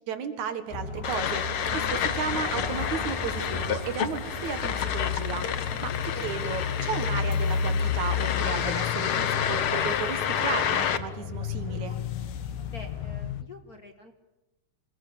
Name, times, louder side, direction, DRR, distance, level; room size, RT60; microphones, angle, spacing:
voice 1, 0.0-12.0, right 6 dB, 70° right, 10 dB, 3.0 m, -34 dB
sound 1, 0.7-13.4, left 7 dB, 80° left, 2.7 m, -33 dB
sound 2, 0.7-13.2, right 1 dB, 10° right, 3.4 m, -43 dB
sound 3, 1.0-11.0, left 9 dB, 60° left, 1.5 m, -30 dB
voice 2, 12.7-14.1, left 2 dB, 40° left, 5 dB, 1.6 m, -46 dB
27.5 x 21.0 x 8.7 m, 0.99 s
omnidirectional pair, 3.5 m